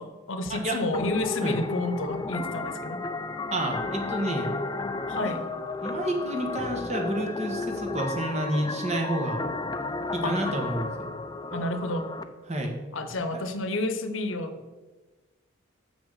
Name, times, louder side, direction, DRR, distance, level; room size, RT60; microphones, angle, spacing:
voice 1, 0.0-3.0 5.1-5.5 10.2-10.5 11.5-12.1 12.9-14.6, left 2 dB, 75° left, 8 dB, 0.9 m, -30 dB
sound 1, 0.9-12.2, left 3 dB, 20° left, 0.4 m, -33 dB
voice 2, 3.5-4.5 5.2-5.3 5.8-9.4 10.1-11.1 12.5-12.7, right 1 dB, 35° right, 2 dB, 1.3 m, -29 dB
7.1 x 6.0 x 6.5 m, 1.2 s
head